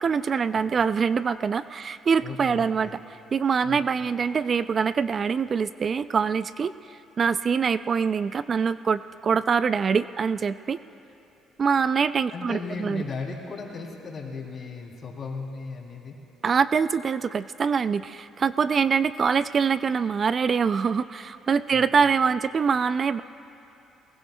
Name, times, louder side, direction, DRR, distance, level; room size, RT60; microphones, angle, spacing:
voice 1, 0.0-3.0 3.3-10.8 11.6-13.0 16.4-23.2, right 6 dB, 45° right, 14 dB, 0.3 m, -24 dB
voice 2, 2.2-3.0 3.6-3.8 12.3-16.2 21.7-21.8, left 4 dB, 45° left, -1 dB, 3.1 m, -36 dB
22.0 x 20.5 x 2.3 m, 3.0 s
supercardioid pair, 75°, 0 cm